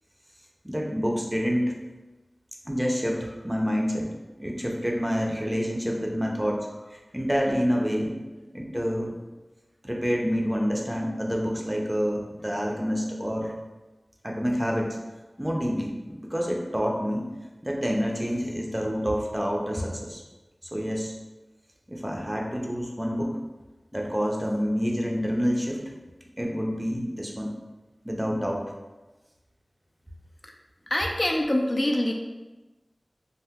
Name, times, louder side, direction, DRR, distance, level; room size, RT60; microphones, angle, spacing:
voice 1, 0.6-1.7 2.7-4.1 4.4-8.2 8.5-9.2 9.8-13.5 14.2-15.0 15.4-17.3 17.6-20.2 20.7-21.1 21.9-23.4 23.9-25.8 26.4-27.5 28.0-28.6, equal, 15° right, -1 dB, 0.5 m, -28 dB
voice 2, 30.9-32.1, left 1 dB, 45° left, 0 dB, 0.3 m, -25 dB
2.7 x 2.1 x 3.4 m, 1.1 s
wide cardioid pair, 50°, 0 cm